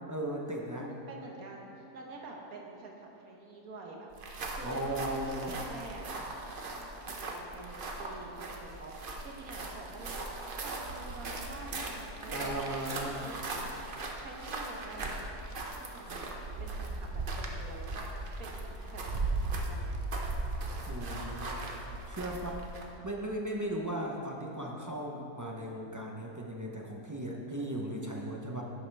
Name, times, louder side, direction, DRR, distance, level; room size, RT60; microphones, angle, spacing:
voice 1, 0.1-0.9 4.6-5.5 12.3-13.3 20.9-21.6 22.1-22.6 23.0-28.6, right 1 dB, 20° right, -1 dB, 0.5 m, -37 dB
voice 2, 0.7-4.1 4.5-10.3 10.6-13.9 14.2-16.3 16.6-18.1 18.4-20.0, right 2 dB, 70° right, -1 dB, 1.5 m, -48 dB
sound 1, 4.1-23.0, right 2 dB, 45° right, 0.9 m, -38 dB
11.0 x 8.6 x 3.4 m, 2.8 s
omnidirectional pair, 1.6 m